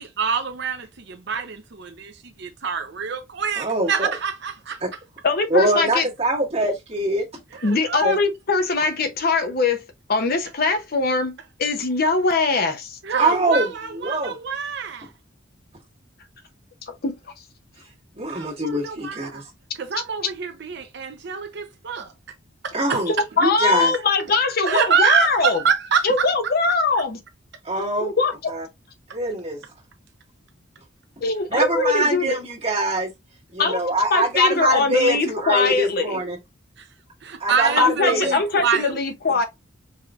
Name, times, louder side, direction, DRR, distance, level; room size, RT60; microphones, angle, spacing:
voice 1, 0.0-4.8 7.5-8.2 13.0-15.1 18.3-19.4 19.8-22.1 22.6-23.1 24.6-26.3 36.8-36.9 37.2-39.0, right 6 dB, 55° right, 0.6 m, -26 dB
voice 2, 3.6-4.1 4.8-4.9 5.5-7.2 8.0-8.2 13.2-13.7 14.0-14.3 18.2-19.4 22.7-23.1 23.4-23.9 27.6-28.1 28.5-28.6 29.1-29.6 31.5-33.1 33.5-36.4 37.4-38.3, right 1 dB, 30° right, 1.7 m, -23 dB
voice 3, 5.2-6.1 7.6-9.8 10.1-13.0 16.9-17.2 23.1-25.6 26.0-27.2 28.0-28.5 31.2-32.4 33.6-33.8 34.1-36.2 37.8-39.4, left 3 dB, 50° left, 0.7 m, -22 dB
4.9 x 3.1 x 2.4 m
head